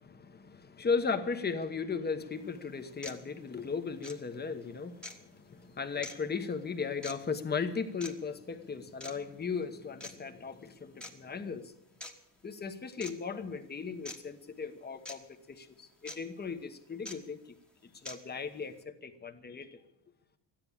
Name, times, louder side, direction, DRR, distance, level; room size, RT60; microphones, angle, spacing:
voice 1, 0.0-11.8 12.4-17.4 18.0-19.8, left 5 dB, 20° left, 8 dB, 1.1 m, -36 dB
sound 1, 2.3-2.4 3.0-3.2 4.0-4.2 5.0-5.2 6.0-6.2 7.0-7.2 8.0-8.1 9.0-9.2 10.0-10.1 11.0-11.1 12.0-12.1 13.0-13.1 14.1-14.2 15.1-15.2 16.1-16.2 17.1-17.2 18.1-18.2, left 1 dB, ahead, 1.3 m, -43 dB
13.5 x 10.5 x 8.7 m, 0.84 s
cardioid pair, 140°, 43 cm